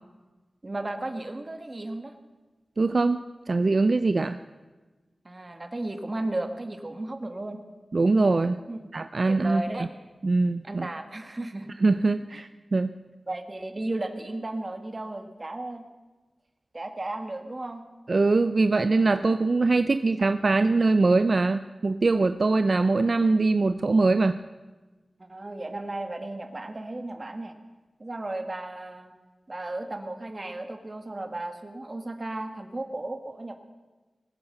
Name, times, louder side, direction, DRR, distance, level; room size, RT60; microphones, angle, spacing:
voice 1, 0.6-2.1 5.2-7.6 8.7-8.8 9.3-9.9 10.6-11.7 12.3-12.4 13.3-15.8 16.7-17.8 25.2-27.6 28.0-29.1 29.5-33.6, right 2 dB, 40° right, 6 dB, 1.7 m, -34 dB
voice 2, 2.8-4.4 7.9-8.6 8.9-9.9 10.2-10.9 11.8-12.9 18.1-24.4, right 3 dB, 55° right, 10 dB, 0.5 m, -22 dB
21.0 x 8.7 x 6.8 m, 1.2 s
wide cardioid pair, 65°, 0 cm